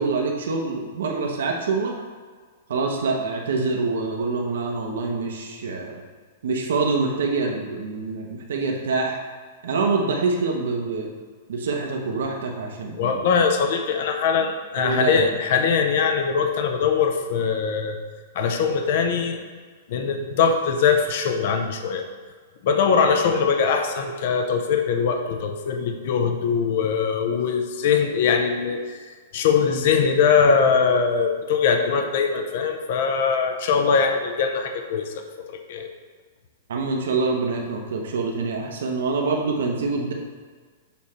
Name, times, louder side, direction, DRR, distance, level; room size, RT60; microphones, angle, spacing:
voice 1, 0.0-1.9 2.7-6.0 6.4-9.2 9.6-11.1 11.5-13.2 14.8-15.3 36.7-40.1, right 4 dB, 70° right, 1 dB, 0.9 m, -25 dB
voice 2, 13.0-18.0 18.3-19.4 19.9-22.0 22.6-29.0 29.3-35.9, left 6 dB, 45° left, 5 dB, 0.6 m, -22 dB
7.0 x 3.2 x 5.6 m, 1.6 s
supercardioid pair, 175°, 0 cm